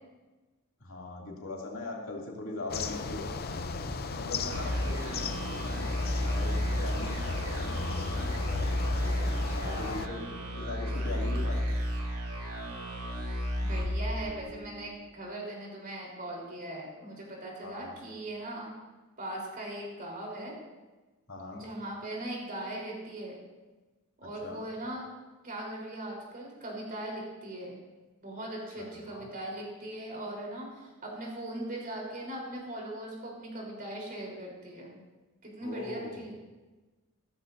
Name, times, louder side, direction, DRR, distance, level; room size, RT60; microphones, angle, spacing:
voice 1, 0.8-3.4 4.2-5.2 6.2-7.7 9.5-11.8 17.6-18.0 21.3-21.6 24.2-24.6 28.8-29.3 35.6-36.2, left 2 dB, 65° left, -2 dB, 2.7 m, -40 dB
Park Day Pleasantwind roadhumm Birds, 2.7-10.1, left 4 dB, 45° left, 0.6 m, -35 dB
sound 1, 4.5-14.8, equal, 85° right, 2.7 m, -32 dB
voice 2, 4.7-5.4 9.2-10.2 13.6-18.7 19.2-20.6 21.5-23.4 24.2-25.0 25.4-27.8 28.2-35.0 35.4-36.3, right 1 dB, 40° right, -2 dB, 4.0 m, -40 dB
15.5 x 13.0 x 2.7 m, 1.2 s
head